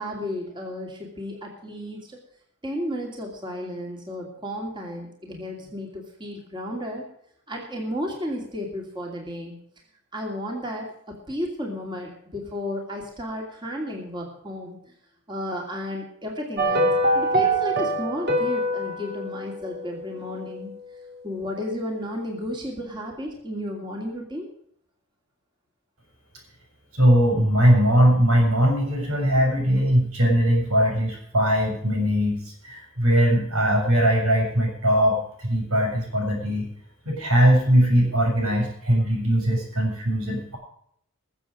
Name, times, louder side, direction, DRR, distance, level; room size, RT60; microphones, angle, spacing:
voice 1, 0.0-2.2 2.6-7.0 7.5-9.6 10.1-14.9 15.3-20.7 21.2-24.5, left 1 dB, 20° right, 0 dB, 2.7 m, -33 dB
sound 1, 16.6-20.9 21.1-21.2, right 1 dB, 50° right, 2.2 m, -25 dB
voice 2, 26.9-36.7 37.1-40.6, equal, 85° right, 2 dB, 7.2 m, -20 dB
21.5 x 7.5 x 5.0 m, 0.67 s
head